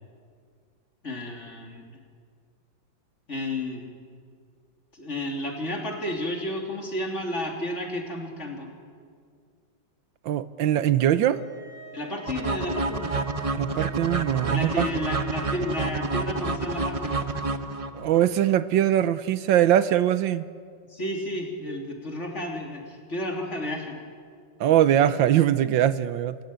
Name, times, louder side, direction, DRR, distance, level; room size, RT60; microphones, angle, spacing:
voice 1, 1.0-1.8 3.3-3.9 4.9-8.7 11.9-13.1 14.5-17.2 20.9-24.0, left 1 dB, 35° left, 1 dB, 3.4 m, -32 dB
voice 2, 10.2-11.4 13.6-14.9 17.9-20.4 24.6-26.4, right 11 dB, 85° right, 14 dB, 1.5 m, -22 dB
sound 1, 11.1-16.3, right 6 dB, 55° right, 7.7 m, -45 dB
sound 2, 12.3-18.2, right 3 dB, 35° right, 0.6 m, -29 dB
28.0 x 16.5 x 8.9 m, 2.1 s
omnidirectional pair, 2.0 m